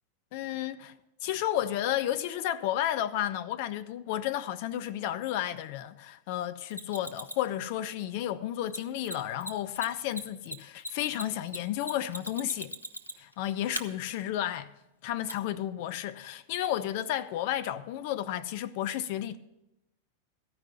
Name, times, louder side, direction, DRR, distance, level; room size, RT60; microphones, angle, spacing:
voice 1, 0.3-0.9 1.2-12.7 13.2-14.7 15.0-19.4, left 12 dB, 50° left, 0.4 m, -32 dB
Mechanisms, 6.7-7.5 8.7-8.8 9.0-9.1 9.4-9.5 9.8-13.3 13.7-13.8 15.3-15.4, equal, 90° left, 0.6 m, -38 dB
14.0 x 5.4 x 7.0 m
figure-of-eight pair, 90°, 0 cm